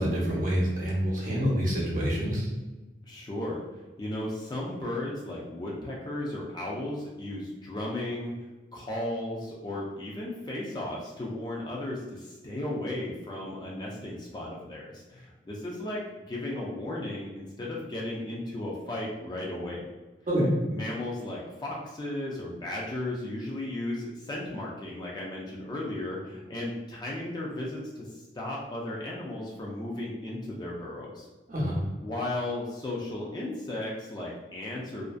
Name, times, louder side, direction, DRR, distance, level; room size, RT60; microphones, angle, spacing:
voice 1, 0.0-2.5 20.3-20.5 31.5-31.8, equal, 45° right, -5 dB, 0.7 m, -27 dB
voice 2, 3.0-3.6 4.0-8.3 8.7-19.8 20.7-31.3 32.0-35.1, left 1 dB, 25° left, -4 dB, 0.3 m, -35 dB
2.5 x 2.2 x 2.3 m, 1.2 s
head